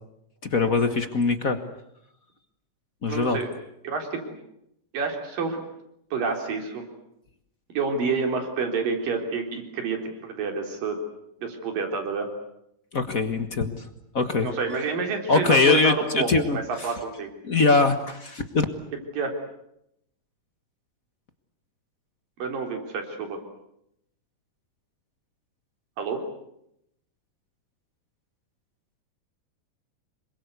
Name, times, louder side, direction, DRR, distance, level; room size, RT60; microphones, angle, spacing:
voice 1, 0.5-1.6 3.0-3.4 12.9-13.8 14.1-14.5 15.3-16.9 17.4-18.7, left 3 dB, 45° left, 9 dB, 1.1 m, -22 dB
voice 2, 3.1-3.5 3.8-4.3 4.9-5.6 6.1-6.9 7.7-11.0 11.4-12.3 14.4-17.3 19.2-19.3 22.4-23.4 26.0-26.2, right 4 dB, 90° right, 4 dB, 5.5 m, -28 dB
27.0 x 23.5 x 8.3 m, 0.78 s
omnidirectional pair, 3.8 m